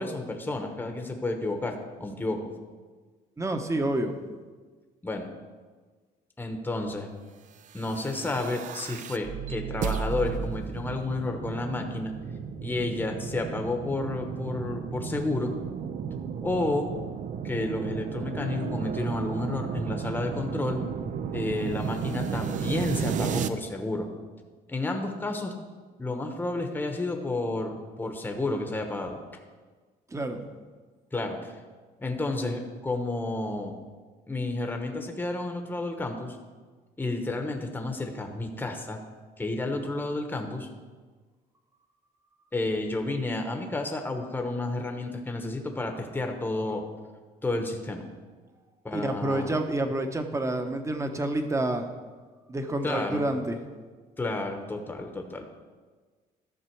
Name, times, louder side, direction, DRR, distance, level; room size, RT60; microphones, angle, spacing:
voice 1, 0.0-2.5 5.0-5.3 6.4-7.1 7.7-12.1 12.6-15.5 16.4-16.9 17.4-20.8 21.3-24.1 24.7-25.5 26.0-29.2 31.1-31.5 32.0-33.8 34.3-36.4 37.0-39.0 39.4-40.7 42.5-46.8 47.4-48.1 48.8-49.5 52.8-53.2 54.2-55.4, left 2 dB, 10° left, 4 dB, 1.0 m, -31 dB
voice 2, 3.4-4.1 30.1-30.4 48.9-51.9 52.5-53.6, right 1 dB, 15° right, 6 dB, 1.0 m, -28 dB
sound 1, 7.7-23.5, right 7 dB, 45° right, 0.6 m, -34 dB
13.0 x 6.0 x 4.6 m, 1.4 s
cardioid pair, 110°, 17 cm